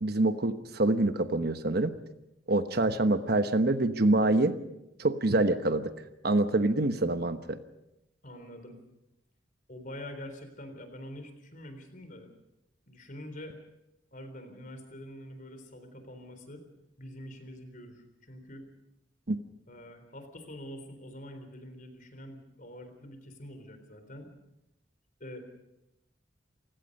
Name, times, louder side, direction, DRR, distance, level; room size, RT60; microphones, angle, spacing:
voice 1, 0.0-1.9 2.5-4.5 5.0-5.9 6.2-7.6 19.3-19.4, right 2 dB, 55° right, 9 dB, 1.1 m, -26 dB
voice 2, 8.2-8.8 9.7-12.3 12.9-13.6 14.1-16.6 17.0-18.6 19.7-24.3 25.2-25.4, left 1 dB, 45° left, 7 dB, 3.9 m, -45 dB
29.0 x 17.0 x 5.4 m, 0.87 s
head